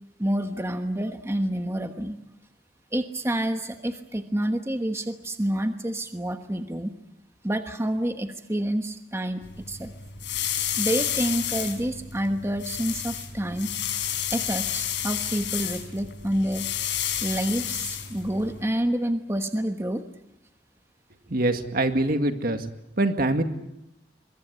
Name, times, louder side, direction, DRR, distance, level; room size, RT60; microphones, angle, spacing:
voice 1, 0.2-2.2 2.9-6.9 7.4-9.9 10.8-13.7 14.3-16.7 17.2-20.0, right 1 dB, 15° right, 7 dB, 1.2 m, -28 dB
sound 1, 9.4-18.6, left 10 dB, 85° left, 5.2 m, -31 dB
voice 2, 21.3-22.7 23.0-23.4, right 2 dB, 55° right, 7 dB, 2.1 m, -24 dB
23.5 x 22.5 x 9.4 m, 0.86 s
head